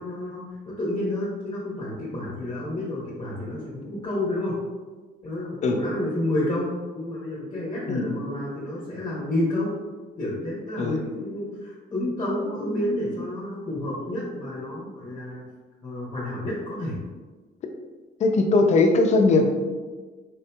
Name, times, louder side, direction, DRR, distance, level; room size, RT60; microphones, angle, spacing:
voice 1, 0.0-4.6 5.2-9.7 10.2-15.4 15.8-17.0, left 1 dB, 25° left, -5 dB, 0.8 m, -30 dB
voice 2, 18.2-19.5, left 3 dB, 45° left, 4 dB, 0.4 m, -20 dB
3.6 x 2.7 x 2.2 m, 1.3 s
cardioid pair, 110°, 17 cm